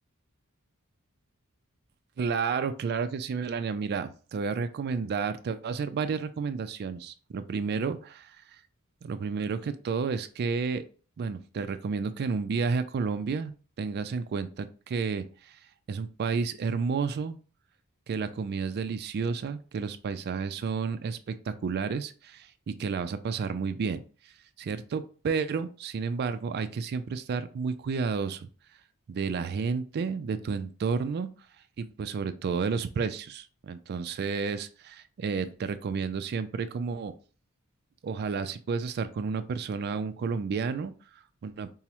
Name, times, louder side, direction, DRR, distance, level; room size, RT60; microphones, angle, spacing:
voice 1, 2.2-8.6 9.0-10.9 11.2-17.4 18.1-28.5 29.1-31.3 31.8-37.1 38.0-41.7, right 5 dB, 50° right, 10 dB, 0.3 m, -31 dB
4.6 x 2.0 x 2.8 m, 0.38 s
head